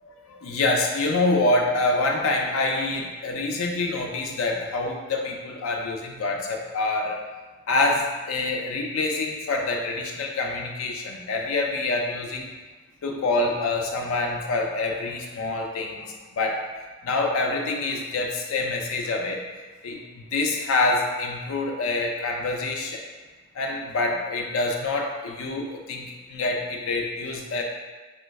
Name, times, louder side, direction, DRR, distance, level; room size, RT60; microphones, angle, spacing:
voice 1, 0.0-7.2 7.7-12.5 13.0-16.7 17.0-19.4 19.8-23.0 23.5-27.6, left 2 dB, 85° left, 1 dB, 0.4 m, -26 dB
2.9 x 2.2 x 3.4 m, 1.3 s
head